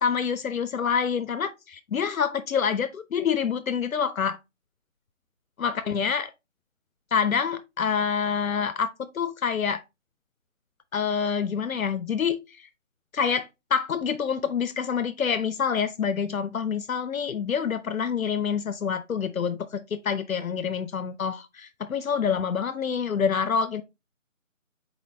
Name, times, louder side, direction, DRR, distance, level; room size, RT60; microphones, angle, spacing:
voice 1, 0.0-4.4 5.6-6.3 7.1-8.9 9.1-9.8 10.9-12.7 13.1-23.8, left 6 dB, 85° left, 0.6 m, -27 dB
4.2 x 4.2 x 2.6 m
figure-of-eight pair, 160°, 40 cm